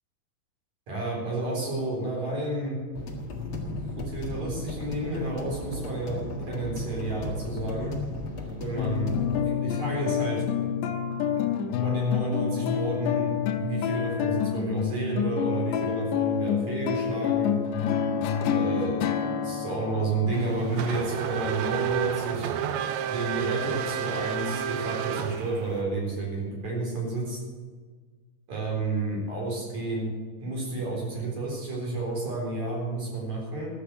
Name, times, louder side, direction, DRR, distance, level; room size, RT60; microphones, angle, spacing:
voice 1, 0.9-2.8 3.9-6.2 6.5-7.9 8.6-9.1 9.5-10.4 11.8-13.3 13.6-17.5 18.5-22.5 23.1-27.4 28.5-30.1 30.4-33.7, right 2 dB, 40° right, -2 dB, 5.0 m, -31 dB
sound 1, 3.0-9.4, left 2 dB, 55° left, 1.3 m, -35 dB
sound 2, 8.8-21.5, left 8 dB, 80° left, 2.8 m, -28 dB
Race car auto racing / Accelerating revving vroom, 20.3-25.8, right 9 dB, 80° right, 3.0 m, -30 dB
13.0 x 8.5 x 7.9 m, 1.5 s
omnidirectional pair, 5.4 m